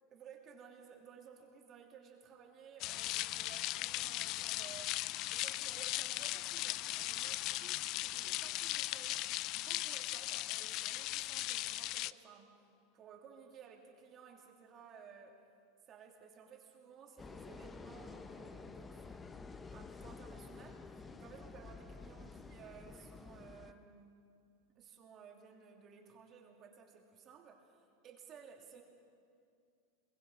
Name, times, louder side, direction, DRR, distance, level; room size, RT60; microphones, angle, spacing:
voice 1, 0.1-4.9 5.3-15.4 15.9-24.2 24.7-28.8, right 6 dB, 35° right, 1 dB, 2.9 m, -57 dB
sound 1, 2.8-12.1, left 17 dB, 50° left, 0.4 m, -38 dB
sound 2, 17.2-23.7, left 4 dB, 15° left, 0.9 m, -50 dB
23.0 x 20.5 x 5.5 m, 2.3 s
supercardioid pair, 120°, 0 cm